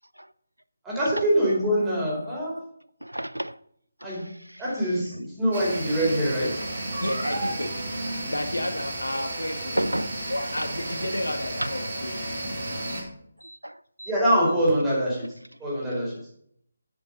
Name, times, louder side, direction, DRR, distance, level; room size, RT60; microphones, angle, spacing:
voice 1, 0.8-2.6 4.0-4.2 4.6-5.1 5.4-6.5 14.1-15.2 15.6-16.1, equal, 10° right, 4.8 m, -24 dB
voice 2, 3.0-3.6 4.2-4.6 9.8-10.1 11.6-11.7 13.4-13.7 14.0-14.1, right 1 dB, 85° right, 0.5 m, -31 dB
sound 1, 5.5-13.0, right 1 dB, 50° right, 5.9 m, -32 dB
voice 3, 7.0-7.7 8.3-12.4, left 1 dB, 75° left, 2.0 m, -32 dB
9.9 x 9.1 x 5.5 m
figure-of-eight pair, 150°, 0 cm